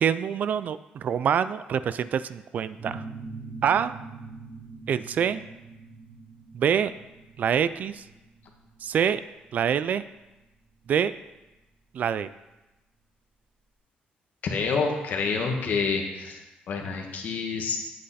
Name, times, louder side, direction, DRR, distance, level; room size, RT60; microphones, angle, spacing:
voice 1, 0.0-3.0 3.6-3.9 4.9-5.5 6.5-6.9 7.4-8.0 8.8-9.2 9.5-10.0 10.9-11.1 11.9-12.3, right 8 dB, 55° right, 15 dB, 0.3 m, -25 dB
sound 1, 2.8-12.2, right 3 dB, 35° right, 2.9 m, -44 dB
voice 2, 14.5-17.8, left 5 dB, 60° left, 2 dB, 1.6 m, -28 dB
8.4 x 7.9 x 4.2 m, 1.0 s
cardioid pair, 125°, 3 cm